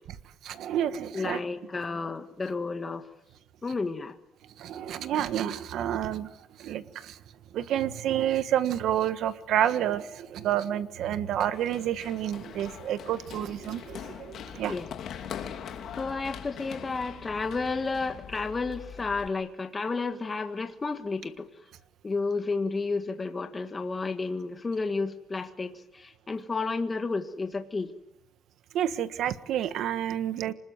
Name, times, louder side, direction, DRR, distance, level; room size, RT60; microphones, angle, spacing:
voice 1, 0.4-1.4 4.6-6.3 6.6-7.2 7.5-14.7 28.7-30.5, right 11 dB, 70° right, 12 dB, 1.4 m, -29 dB
voice 2, 1.1-3.0 3.6-4.2 14.7-14.9 15.9-21.5 22.0-27.9, left 4 dB, 25° left, 6 dB, 1.6 m, -31 dB
Run, 11.5-19.3, left 8 dB, 60° left, 2.6 m, -42 dB
26.0 x 20.5 x 9.4 m, 0.88 s
cardioid pair, 130°, 0 cm